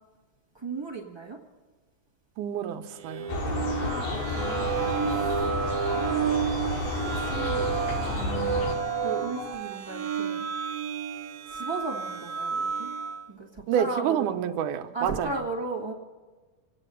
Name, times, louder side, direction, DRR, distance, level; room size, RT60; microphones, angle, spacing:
voice 1, 0.5-1.4 3.8-4.9 5.9-6.7 7.0-7.8 9.0-10.5 11.5-12.9 13.3-14.3 14.9-15.9, right 3 dB, 40° right, -2 dB, 0.4 m, -36 dB
voice 2, 2.4-3.3 13.7-15.4, right 9 dB, 80° right, 7 dB, 2.3 m, -28 dB
sound 1, 3.0-13.3, right 7 dB, 60° right, 1.7 m, -31 dB
sound 2, 3.3-8.8, left 3 dB, 75° left, 3.3 m, -31 dB
sound 3, 3.6-9.6, left 4 dB, 20° left, 1.9 m, -38 dB
26.5 x 9.2 x 5.6 m, 1.3 s
omnidirectional pair, 3.7 m